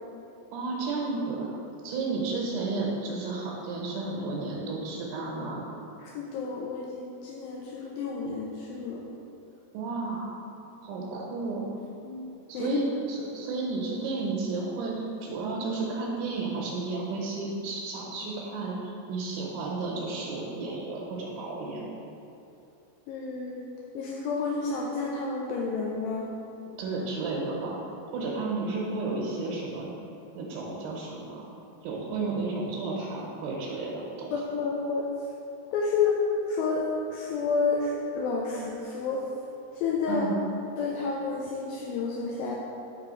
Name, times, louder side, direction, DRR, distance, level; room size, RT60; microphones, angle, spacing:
voice 1, 0.5-1.5 1.8-5.7 9.7-10.3 10.8-11.8 12.5-21.9 26.8-27.8 28.1-29.9 30.4-31.5 31.8-34.3 40.1-40.4, right 3 dB, 75° right, -4 dB, 2.5 m, -32 dB
voice 2, 6.0-9.1 12.0-12.3 12.5-12.8 23.1-26.3 34.3-35.1 35.7-39.3 39.7-40.3 40.8-42.6, left 4 dB, 80° left, -2 dB, 2.1 m, -30 dB
6.1 x 3.2 x 5.3 m, 2.7 s
omnidirectional pair, 4.4 m